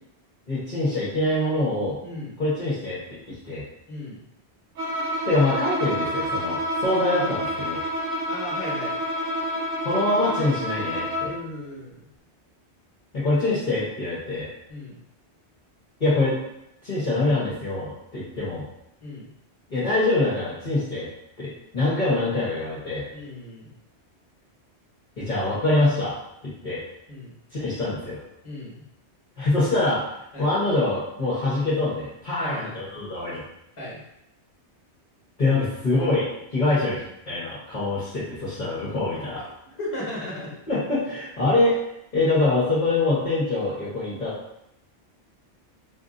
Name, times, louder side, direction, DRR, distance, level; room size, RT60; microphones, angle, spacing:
voice 1, 0.5-2.0 2.4-3.6 5.2-7.8 9.8-11.3 13.1-14.5 16.0-16.4 16.8-18.6 19.7-21.1 21.4-23.0 25.2-26.2 26.4-26.8 27.5-28.2 29.4-30.0 30.4-33.4 35.4-36.3 36.5-39.4 40.7-41.8 42.1-44.3, left 2 dB, 45° left, -10 dB, 1.1 m, -24 dB
voice 2, 2.0-2.3 3.9-4.2 8.3-8.9 11.2-12.1 14.7-15.0 19.0-19.2 23.1-23.7 27.1-27.3 28.4-28.7 30.3-30.5 32.4-32.8 33.8-34.0 39.8-40.5, left 1 dB, 25° left, -6 dB, 1.3 m, -35 dB
Bowed string instrument, 4.8-11.4, equal, 60° right, 0.7 m, -28 dB
4.4 x 2.6 x 2.5 m, 0.82 s
omnidirectional pair, 1.1 m